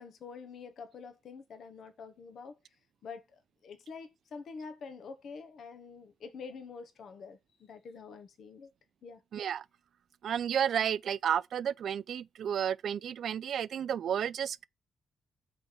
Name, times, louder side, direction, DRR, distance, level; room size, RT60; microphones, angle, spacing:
voice 1, 0.0-2.5 3.0-8.7 9.0-9.2, left 5 dB, 65° left, 1.3 m, -46 dB
voice 2, 9.3-9.6 10.2-14.7, right 9 dB, 65° right, 0.4 m, -32 dB
6.3 x 4.4 x 5.2 m
cardioid pair, 120°, 0 cm